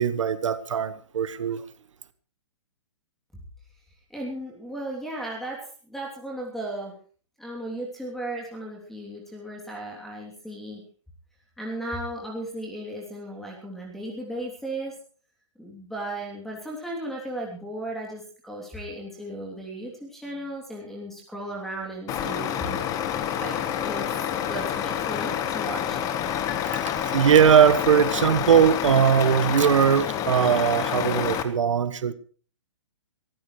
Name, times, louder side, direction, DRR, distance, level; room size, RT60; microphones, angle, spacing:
voice 1, 0.0-1.6 27.1-32.1, right 8 dB, 75° right, 1.4 m, -20 dB
voice 2, 4.1-6.9 7.4-10.8 11.6-15.0 15.6-23.0 23.3-23.6 23.8-24.0 24.5-26.0, right 1 dB, ahead, 3.1 m, -35 dB
Truck, 22.1-31.4, left 9 dB, 20° left, 1.3 m, -28 dB
23.0 x 15.0 x 3.2 m
hypercardioid pair, 145°, 16 cm